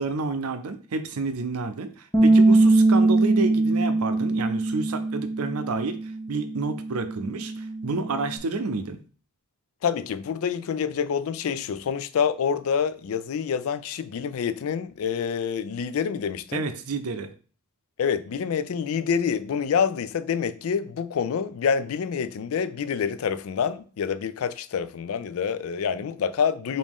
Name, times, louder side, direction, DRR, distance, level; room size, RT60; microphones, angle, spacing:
voice 1, 0.0-9.0 16.5-17.3, right 3 dB, 75° right, 0.6 m, -30 dB
Bass guitar, 2.1-8.4, right 2 dB, 10° left, 0.8 m, -22 dB
voice 2, 9.8-16.7 18.0-26.8, left 7 dB, 65° left, 0.4 m, -27 dB
5.0 x 2.7 x 3.6 m
head